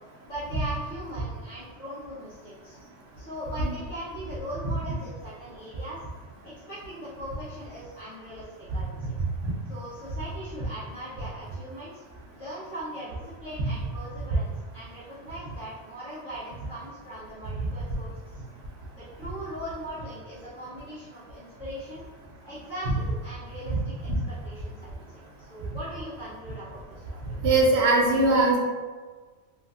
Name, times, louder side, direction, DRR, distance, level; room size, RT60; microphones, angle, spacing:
voice 1, 0.2-2.8 3.2-6.0 6.4-8.9 9.7-12.0 12.3-18.4 18.9-22.0 22.4-24.9 25.4-27.3, equal, 85° left, -14 dB, 1.3 m, -40 dB
voice 2, 27.4-28.6, right 2 dB, 65° right, -2 dB, 0.8 m, -21 dB
3.0 x 2.5 x 2.4 m, 1.4 s
omnidirectional pair, 1.3 m